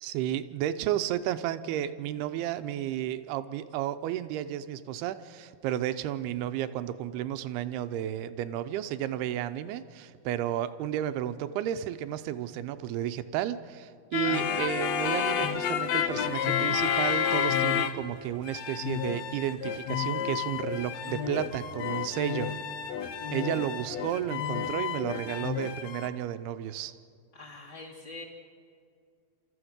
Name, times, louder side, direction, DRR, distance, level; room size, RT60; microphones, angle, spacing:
voice 1, 0.0-22.5 23.3-26.9, right 11 dB, 80° right, 11 dB, 2.6 m, -32 dB
sound 1, 14.1-18.2 18.4-26.1, left 8 dB, 80° left, 1.5 m, -30 dB
voice 2, 27.3-28.2, left 3 dB, 25° left, -5 dB, 3.5 m, -44 dB
30.0 x 14.0 x 8.0 m, 2.3 s
omnidirectional pair, 4.7 m